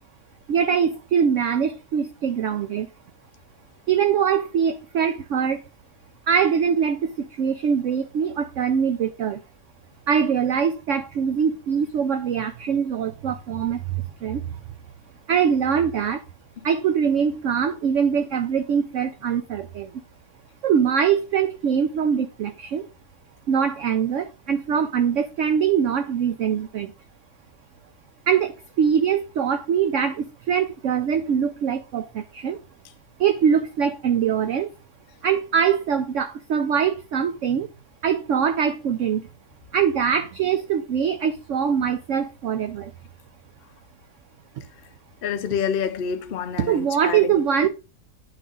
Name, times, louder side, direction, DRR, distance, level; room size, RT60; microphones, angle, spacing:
voice 1, 0.5-2.9 3.9-5.6 6.3-9.4 10.1-14.6 15.3-16.2 16.6-20.0 20.6-22.8 23.5-26.9 28.3-32.6 33.2-34.7 35.2-37.7 38.0-39.3 39.7-42.9 46.6-47.7, right 7 dB, 65° right, 0.8 m, -23 dB
voice 2, 45.2-47.3, left 7 dB, 70° left, 0.5 m, -27 dB
9.3 x 3.6 x 5.2 m
omnidirectional pair, 1.8 m